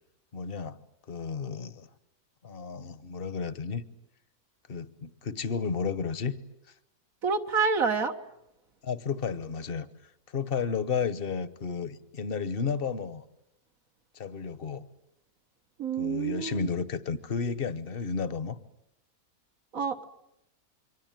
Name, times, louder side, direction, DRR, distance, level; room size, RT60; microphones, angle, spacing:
voice 1, 0.3-0.8 1.1-1.9 2.4-3.8 4.7-6.3 8.8-9.9 10.3-13.2 14.1-14.8 16.0-18.6, left 5 dB, 40° left, 14 dB, 1.3 m, -32 dB
voice 2, 7.2-8.1 15.8-16.7 19.7-20.1, right 5 dB, 60° right, 5 dB, 1.9 m, -28 dB
27.0 x 24.5 x 9.2 m, 0.83 s
omnidirectional pair, 1.6 m